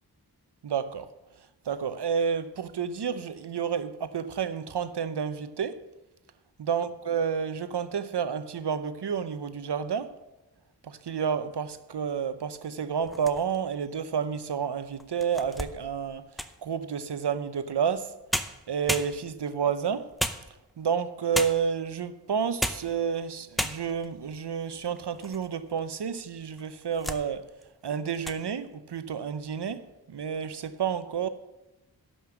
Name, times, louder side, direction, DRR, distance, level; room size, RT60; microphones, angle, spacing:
voice 1, 0.6-1.1 1.6-5.8 6.6-10.2 10.8-16.2 16.6-18.1 18.7-20.1 20.8-27.5 27.8-31.3, right 7 dB, 80° right, 0.7 m, -30 dB
sound 1, 13.0-13.8 14.4-14.5 15.0-16.7 18.0-18.1 18.3-19.5 20.2-20.9 21.3-21.8 22.4-23.0 23.2-23.3 23.6-24.1 24.7-25.5 25.8-25.9 26.6-27.3 27.6-27.8 28.1-28.4, equal, ahead, 0.6 m, -33 dB
12.0 x 5.4 x 7.6 m
wide cardioid pair, 60°, 40 cm